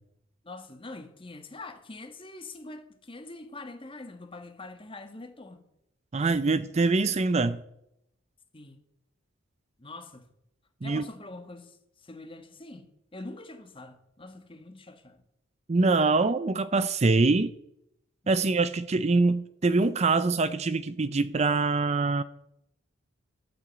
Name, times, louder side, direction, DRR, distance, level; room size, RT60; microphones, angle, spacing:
voice 1, 0.4-5.7 8.5-8.8 9.8-10.3 10.8-15.2 18.2-18.5, left 2 dB, 25° left, 1.5 m, -44 dB
voice 2, 6.1-7.6 10.8-11.0 15.7-17.5 18.3-22.2, right 3 dB, 35° right, 0.5 m, -24 dB
13.0 x 8.7 x 8.1 m
head